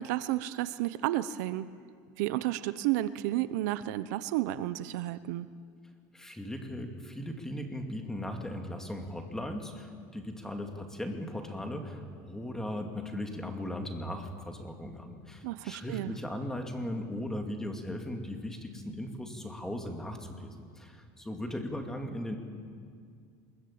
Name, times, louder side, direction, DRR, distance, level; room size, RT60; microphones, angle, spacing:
voice 1, 0.0-1.7 2.2-5.5 15.4-16.1, right 15 dB, 75° right, 14 dB, 0.8 m, -31 dB
voice 2, 6.1-20.5 20.8-22.4, left 1 dB, 5° left, 4 dB, 2.4 m, -38 dB
23.0 x 21.5 x 8.8 m, 2.2 s
supercardioid pair, 150°, 9 cm